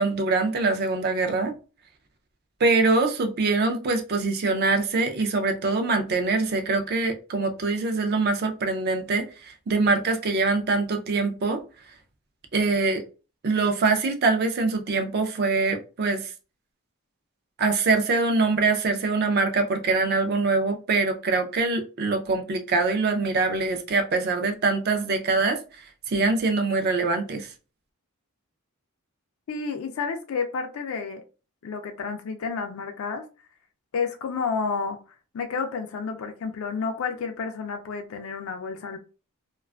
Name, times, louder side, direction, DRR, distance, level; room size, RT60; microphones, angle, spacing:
voice 1, 0.0-1.5 2.6-11.6 12.5-13.0 13.4-16.3 17.6-25.6 26.1-27.5, right 3 dB, 45° right, 0.4 m, -24 dB
voice 2, 29.5-31.2 31.6-33.2 33.9-35.0 35.3-39.0, left 5 dB, 65° left, 0.4 m, -30 dB
2.4 x 2.3 x 2.2 m
head